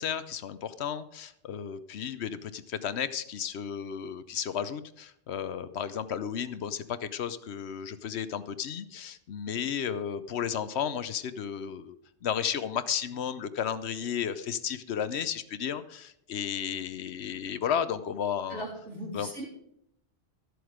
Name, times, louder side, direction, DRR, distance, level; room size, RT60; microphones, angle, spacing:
voice 1, 0.0-12.0 12.2-18.6 19.1-19.3, left 8 dB, 70° left, 13 dB, 1.0 m, -33 dB
voice 2, 18.5-19.5, right 1 dB, 80° right, -3 dB, 4.0 m, -38 dB
13.0 x 7.9 x 5.0 m, 0.75 s
omnidirectional pair, 1.2 m